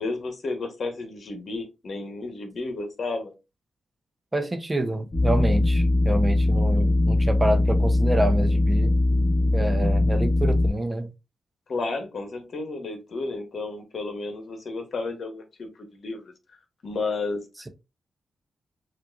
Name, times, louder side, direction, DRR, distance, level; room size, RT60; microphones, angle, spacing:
voice 1, 0.0-3.3 11.7-16.3 16.8-17.4, left 3 dB, 65° left, 1.2 m, -32 dB
voice 2, 4.3-8.9 9.5-11.1, right 1 dB, 25° right, 0.8 m, -27 dB
sound 1, 5.1-10.7, left 2 dB, 30° left, 1.7 m, -21 dB
5.8 x 2.6 x 2.4 m
cardioid pair, 55°, 0 cm